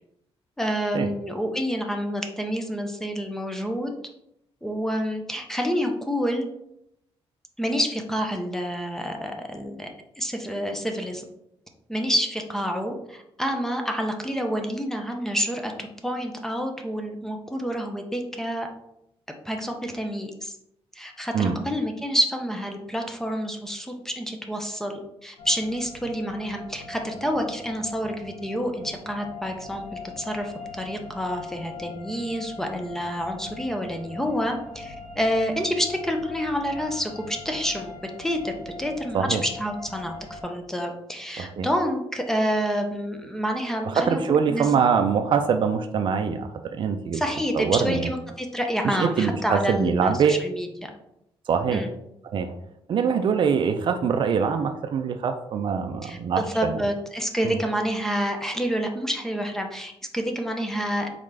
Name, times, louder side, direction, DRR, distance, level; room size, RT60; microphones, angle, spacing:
voice 1, 0.6-3.9 4.6-6.5 7.6-9.9 10.2-11.2 11.9-18.7 19.5-20.5 21.0-29.8 30.2-38.5 38.8-44.7 47.1-50.9 51.7-51.9 56.0-61.1, equal, 5° left, 3 dB, 0.5 m, -28 dB
sound 1, 25.4-40.4, left 3 dB, 85° left, 1.1 m, -41 dB
voice 2, 41.4-41.7 43.8-47.2 47.5-48.1 48.8-50.3 51.5-51.9 52.3-52.5 52.9-56.8 57.4-57.6, right 6 dB, 50° right, 8 dB, 0.4 m, -23 dB
4.1 x 3.7 x 3.3 m, 0.81 s
wide cardioid pair, 155°, 10 cm